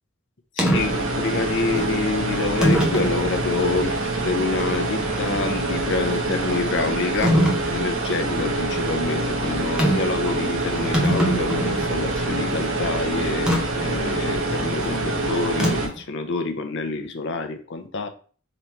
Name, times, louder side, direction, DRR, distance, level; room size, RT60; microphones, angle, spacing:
voice 1, 0.6-7.4 7.7-18.1, left 3 dB, 60° left, 7 dB, 0.7 m, -27 dB
sound 1, 0.6-0.8 1.7-1.9 2.6-3.1 3.8-3.9 7.2-7.6 9.8-10.1 10.5-10.6 10.8-11.9 13.5-13.6 15.6-16.0, equal, 5° right, 0.9 m, -21 dB
sound 2, 0.7-15.9, right 2 dB, 70° right, 1.1 m, -25 dB
4.0 x 3.0 x 4.4 m, 0.42 s
head